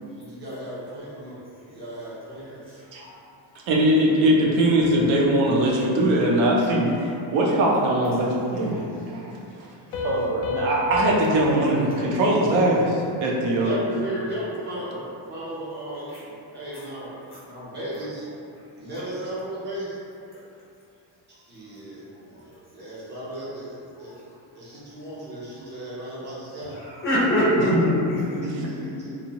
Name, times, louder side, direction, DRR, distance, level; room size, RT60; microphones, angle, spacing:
voice 1, 0.2-1.4 1.7-2.8 13.5-17.1 17.5-18.2 18.7-20.0 21.3-24.1 24.5-26.8 28.3-29.1, right 1 dB, 25° right, -8 dB, 0.6 m, -35 dB
voice 2, 3.7-8.8 9.1-9.3 9.6-9.7 10.0-13.8 27.7-28.0 28.4-28.6, right 1 dB, 70° right, -3 dB, 0.6 m, -21 dB
Piano, 9.9-13.3, left 2 dB, 85° left, 0.5 m, -32 dB
voice 3, 26.8-28.4 28.8-28.9, equal, 30° left, -9 dB, 0.4 m, -24 dB
2.7 x 2.1 x 2.8 m, 2.6 s
cardioid pair, 170°, 47 cm